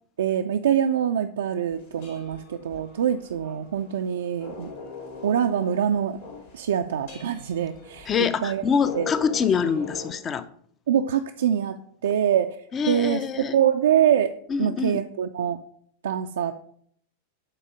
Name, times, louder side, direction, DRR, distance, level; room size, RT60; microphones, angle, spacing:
voice 1, 0.2-4.7 5.2-6.2 6.5-8.7 8.9-9.1 10.9-14.3 14.6-15.6 16.0-16.5, right 9 dB, 65° right, 0.3 m, -24 dB
sound 1, 1.7-10.1, left 4 dB, 60° left, 2.2 m, -41 dB
voice 2, 8.1-10.4 12.7-13.6 14.5-15.0, left 6 dB, 25° left, 0.4 m, -25 dB
7.5 x 4.0 x 5.0 m
figure-of-eight pair, 90°, 0 cm